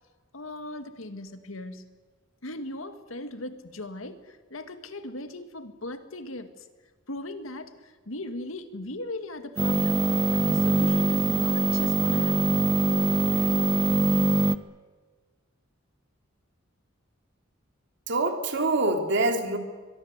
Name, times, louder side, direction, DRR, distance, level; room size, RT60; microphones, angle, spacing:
voice 1, 0.3-1.9 2.4-6.7 7.1-10.1 10.3-12.7 13.3-13.5, left 1 dB, 85° left, 8 dB, 2.0 m, -38 dB
sound 1, 9.6-14.6, right 2 dB, 20° right, 0.7 m, -23 dB
voice 2, 18.1-19.6, right 2 dB, 60° right, 5 dB, 3.2 m, -25 dB
23.5 x 22.5 x 8.1 m, 1.4 s
head